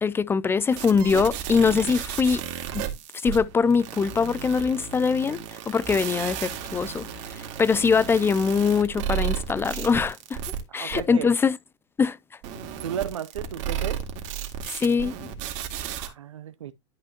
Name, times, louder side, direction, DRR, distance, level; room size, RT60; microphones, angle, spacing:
voice 1, 0.0-2.4 2.7-2.9 3.2-10.4 10.7-11.6 12.0-12.2 14.7-15.3, left 5 dB, 15° left, 0.3 m, -23 dB
sound 1, 0.7-10.6 10.9-11.0 12.4-16.1, right 9 dB, 50° right, 2.1 m, -33 dB
voice 2, 10.7-11.3 12.8-14.0 16.0-16.7, right 9 dB, 85° right, 0.7 m, -34 dB
11.5 x 5.3 x 2.9 m
hypercardioid pair, 105°, 16 cm